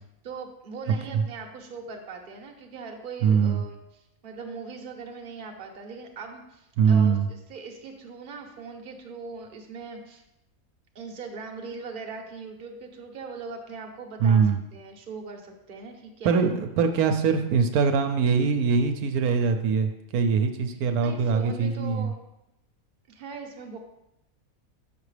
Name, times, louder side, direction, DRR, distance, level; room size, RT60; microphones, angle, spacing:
voice 1, 0.2-10.2 10.9-16.4 21.0-22.2 23.1-23.8, right 4 dB, 40° right, 3 dB, 0.9 m, -40 dB
voice 2, 3.2-3.6 6.8-7.3 14.2-14.6 16.2-22.1, right 6 dB, 80° right, 7 dB, 1.0 m, -22 dB
7.0 x 5.9 x 3.3 m, 0.87 s
omnidirectional pair, 1.5 m